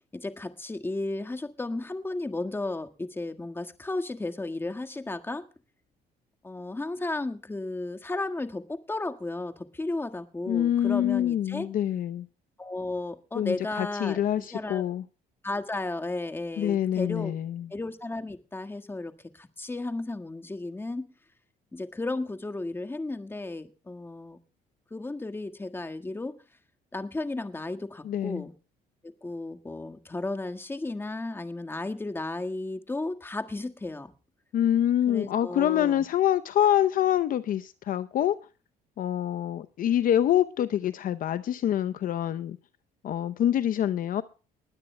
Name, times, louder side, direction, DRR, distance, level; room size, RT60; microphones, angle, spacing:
voice 1, 0.1-5.4 6.4-11.7 12.6-14.8 15.4-17.3 17.7-21.1 21.7-24.4 24.9-26.3 26.9-28.5 29.0-34.1 35.1-36.1, left 2 dB, 15° left, 1.6 m, -34 dB
voice 2, 10.5-12.3 13.3-15.0 16.6-17.7 28.0-28.4 34.5-38.4 39.0-42.6 43.0-44.2, left 11 dB, 55° left, 0.7 m, -26 dB
21.0 x 15.5 x 2.2 m
cardioid pair, 110°, 17 cm